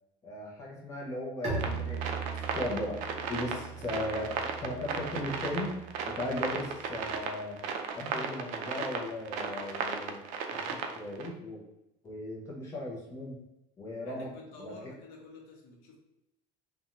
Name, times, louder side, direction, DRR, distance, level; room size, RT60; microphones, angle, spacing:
voice 1, 0.2-2.0 2.5-3.0 3.3-4.3 4.6-5.8 6.2-7.6 7.9-11.6 12.0-13.4 13.8-14.3 14.6-14.8, left 1 dB, 20° left, -3 dB, 0.5 m, -37 dB
Bowed string instrument, 1.4-7.0, right 5 dB, 40° right, 0.8 m, -40 dB
sound 1, 1.5-11.3, right 6 dB, 60° right, 0.4 m, -35 dB
voice 2, 3.4-4.0 14.0-16.0, left 2 dB, 75° left, 0 dB, 0.8 m, -51 dB
2.5 x 2.2 x 2.8 m, 0.89 s
cardioid pair, 165°, 15 cm